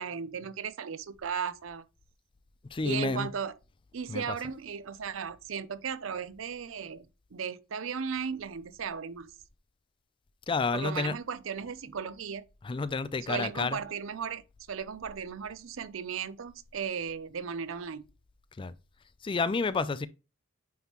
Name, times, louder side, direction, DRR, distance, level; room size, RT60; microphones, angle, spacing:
voice 1, 0.0-1.8 2.8-3.5 3.9-9.3 10.7-12.4 13.3-14.4 14.7-18.0, right 6 dB, 70° right, 0.5 m, -36 dB
voice 2, 2.7-3.3 4.1-4.2 10.5-11.2 12.6-13.8 18.6-18.7 19.2-20.1, left 4 dB, 25° left, 0.3 m, -30 dB
9.3 x 3.6 x 2.9 m
head